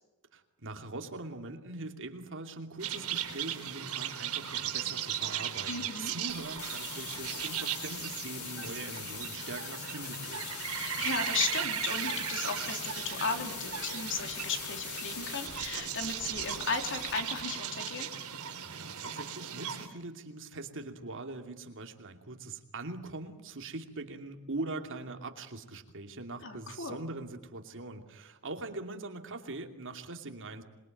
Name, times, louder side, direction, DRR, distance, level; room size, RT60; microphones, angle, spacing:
voice 1, 0.3-10.5 18.6-30.6, right 2 dB, 60° right, 5 dB, 2.7 m, -42 dB
sound 1, 2.8-19.9, right 9 dB, 75° right, 3.9 m, -37 dB
voice 2, 5.7-6.1 10.8-18.1 26.4-27.0, left 4 dB, 60° left, 5 dB, 3.5 m, -35 dB
sound 2, 6.3-17.4, left 7 dB, 85° left, 3.6 m, -43 dB
26.5 x 22.5 x 9.2 m, 1.0 s
head